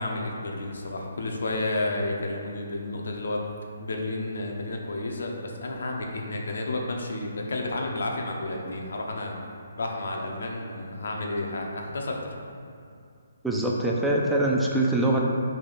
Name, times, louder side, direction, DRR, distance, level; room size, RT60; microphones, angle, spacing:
voice 1, 0.0-3.4 3.8-9.4 9.8-12.2, left 2 dB, 75° left, 1 dB, 0.6 m, -31 dB
voice 2, 13.4-15.2, right 1 dB, 5° right, -3 dB, 0.3 m, -23 dB
3.3 x 2.8 x 3.9 m, 2.4 s
hypercardioid pair, 155°, 0 cm